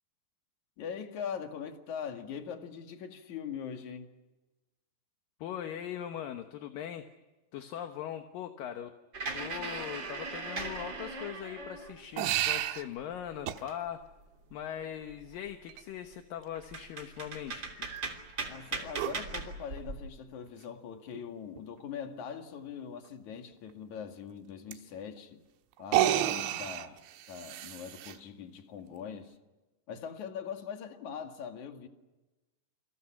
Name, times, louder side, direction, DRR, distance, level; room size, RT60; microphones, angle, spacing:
voice 1, 0.8-4.1 18.5-25.4 25.8-27.0 27.3-29.4 29.9-31.9, left 7 dB, 50° left, 5 dB, 3.0 m, -42 dB
voice 2, 5.4-7.1 7.5-8.9 9.3-14.1 14.5-17.9, left 10 dB, 65° left, 6 dB, 2.4 m, -40 dB
sound 1, 9.1-12.2 12.6-14.1 14.5-14.6 15.0-15.5 16.1-16.2 16.5-20.0, right 3 dB, 30° right, 3.2 m, -39 dB
sound 2, 12.2-12.8 13.5-13.6 15.7-15.8 18.9-19.2 20.6-20.7 21.1-21.2 21.6-21.7 24.7-24.8 25.8-28.2, right 13 dB, 85° right, 3.5 m, -30 dB
29.0 x 26.5 x 5.9 m, 1.1 s
omnidirectional pair, 5.1 m